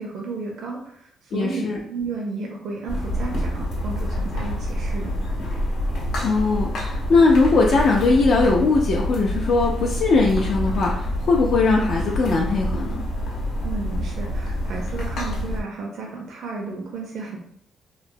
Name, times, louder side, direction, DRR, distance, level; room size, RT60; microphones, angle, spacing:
voice 1, 0.0-5.1 13.6-17.4, right 3 dB, 65° right, 0 dB, 0.4 m, -33 dB
voice 2, 1.3-1.8 6.2-13.0, left 3 dB, 60° left, -1 dB, 0.3 m, -20 dB
sound 1, 2.9-15.6, equal, 85° left, 0.7 m, -27 dB
3.0 x 2.0 x 2.5 m, 0.67 s
cardioid pair, 140°, 0 cm